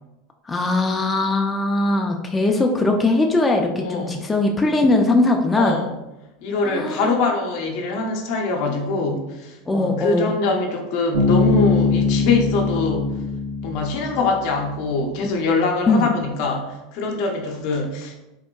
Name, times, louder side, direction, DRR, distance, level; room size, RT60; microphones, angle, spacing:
voice 1, 0.5-5.8 6.6-7.1 9.7-10.3 15.9-16.1, left 2 dB, 15° left, 1 dB, 0.3 m, -20 dB
voice 2, 3.8-4.2 5.5-5.9 6.4-13.1 13.6-18.2, left 3 dB, 65° left, 2 dB, 0.6 m, -23 dB
Bass guitar, 11.1-14.8, left 4 dB, 90° right, 1.4 m, -21 dB
3.5 x 2.1 x 2.3 m, 0.95 s
hypercardioid pair, 95°, 0 cm